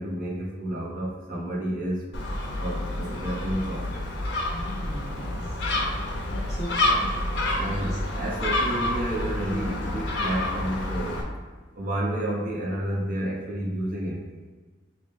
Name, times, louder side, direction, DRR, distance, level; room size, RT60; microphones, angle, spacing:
voice 1, 0.0-2.1 2.6-4.1 7.6-11.3 11.8-14.3, right 1 dB, 45° right, -3 dB, 0.9 m, -30 dB
Gull seagull, 2.1-11.2, left 1 dB, 65° left, 0.7 m, -28 dB
voice 2, 4.5-7.5, equal, 20° right, -13 dB, 1.3 m, -39 dB
6.1 x 2.1 x 3.4 m, 1.4 s
head